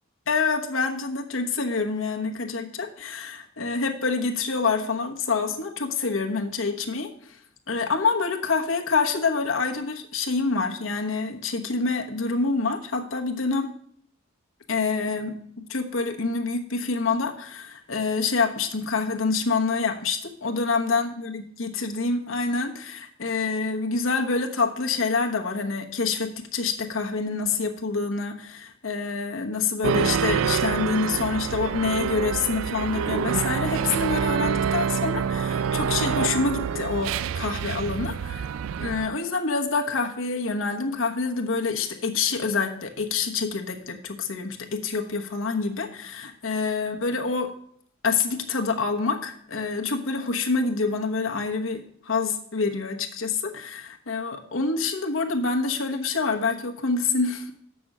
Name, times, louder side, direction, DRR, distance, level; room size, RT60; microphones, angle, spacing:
voice 1, 0.3-7.4 7.7-13.7 14.7-15.4 15.7-38.5 38.8-47.5 48.0-57.5, left 4 dB, 75° left, 3 dB, 1.1 m, -27 dB
sound 1, 29.8-39.1, right 7 dB, 75° right, 0.3 m, -27 dB
6.5 x 6.2 x 7.2 m, 0.65 s
head